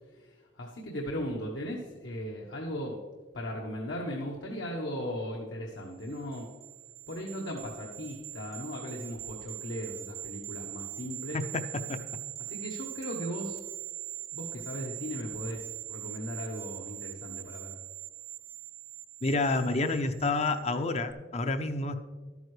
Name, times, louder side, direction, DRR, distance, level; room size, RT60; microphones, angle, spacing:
voice 1, 0.1-3.0 3.3-6.5 7.1-11.5 12.4-13.7 14.3-17.8, equal, 75° left, -1 dB, 1.1 m, -37 dB
sound 1, 6.0-20.6 21.0-21.1, right 14 dB, 30° right, 0.3 m, -42 dB
voice 2, 11.3-12.0 19.2-21.9, left 2 dB, 35° left, 9 dB, 0.5 m, -29 dB
12.0 x 9.3 x 3.2 m, 1.4 s
head